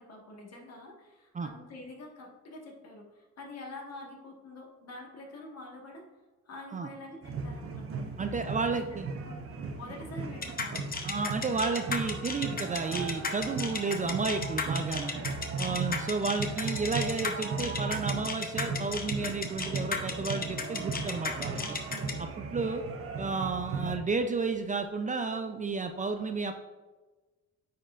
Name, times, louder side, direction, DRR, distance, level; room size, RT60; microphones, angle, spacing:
voice 1, 0.0-6.0 6.5-8.0 8.4-9.0 9.2-9.4 9.8-10.9, left 2 dB, 55° left, -1 dB, 1.6 m, -46 dB
sound 1, 7.2-24.0, right 4 dB, 50° right, 0.9 m, -37 dB
voice 2, 8.2-9.1 11.0-15.2 15.6-21.8 22.2-22.8 23.2-26.5, right 4 dB, 25° right, 6 dB, 0.4 m, -32 dB
sound 2, 10.4-22.1, left 5 dB, 30° left, 0.8 m, -34 dB
sound 3, 18.7-22.6, right 5 dB, 85° right, 0.8 m, -51 dB
9.1 x 4.3 x 2.5 m, 1.3 s
cardioid pair, 90°, 30 cm